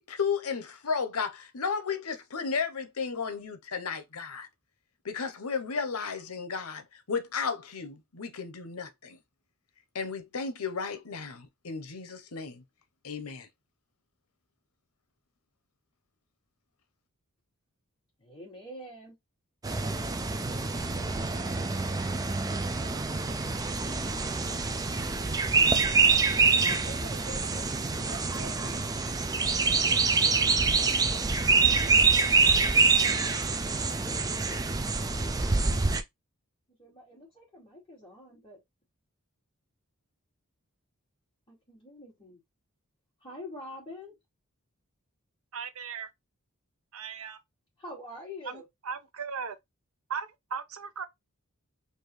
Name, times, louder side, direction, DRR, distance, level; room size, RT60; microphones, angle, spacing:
voice 1, 0.0-4.5 5.0-9.2 9.9-12.6 13.0-13.5, left 5 dB, 85° left, 0.9 m, -34 dB
voice 2, 18.2-19.1 26.3-28.8 36.8-38.6 41.5-42.4 43.2-44.1 47.8-48.7, left 1 dB, 25° left, 2.6 m, -45 dB
sound 1, 19.6-36.0, right 4 dB, 15° right, 0.4 m, -26 dB
voice 3, 45.5-46.1 46.9-47.4 48.9-49.6 50.1-51.0, right 6 dB, 70° right, 0.7 m, -37 dB
4.5 x 2.7 x 3.2 m
head